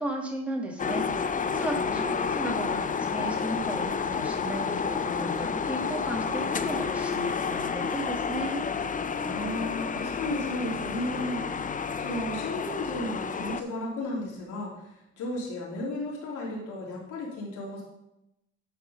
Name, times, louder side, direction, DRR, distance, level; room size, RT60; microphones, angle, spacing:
voice 1, 0.0-8.6, right 1 dB, 5° right, -1 dB, 2.2 m, -35 dB
sound 1, 0.8-13.6, left 5 dB, 25° left, 0.5 m, -30 dB
voice 2, 1.6-2.4 9.2-14.7 15.2-17.8, left 1 dB, 85° left, -5 dB, 3.3 m, -34 dB
10.0 x 4.8 x 5.3 m, 0.88 s
cardioid pair, 90°, 30 cm